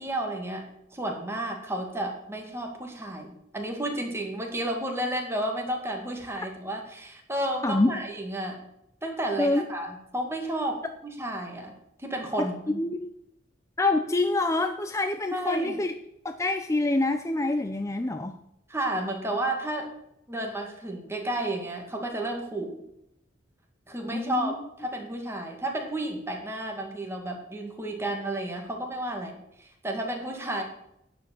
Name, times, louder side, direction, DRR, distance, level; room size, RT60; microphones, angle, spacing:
voice 1, 0.0-8.6 9.0-11.7 12.0-12.8 15.3-15.8 18.7-19.9 20.3-22.8 23.9-24.5 24.8-30.6, right 1 dB, 15° right, 2 dB, 2.1 m, -32 dB
voice 2, 7.6-7.9 9.4-9.7 12.4-12.5 12.8-13.1 13.8-15.9 16.2-18.3 24.1-24.5, left 2 dB, 15° left, 7 dB, 0.5 m, -26 dB
11.0 x 5.1 x 8.4 m, 0.79 s
head